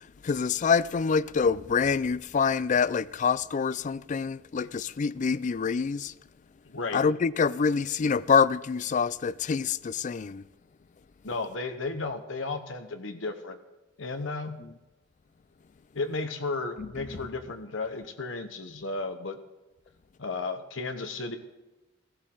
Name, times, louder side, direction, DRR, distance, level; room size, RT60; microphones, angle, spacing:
voice 1, 0.2-6.1 6.9-10.4 14.6-14.7 16.8-17.1, left 5 dB, 40° left, 0.4 m, -26 dB
voice 2, 6.7-7.0 11.2-13.6 14.0-14.6 15.9-19.4 20.2-21.4, left 3 dB, 85° left, 1.1 m, -34 dB
16.0 x 15.0 x 3.9 m
head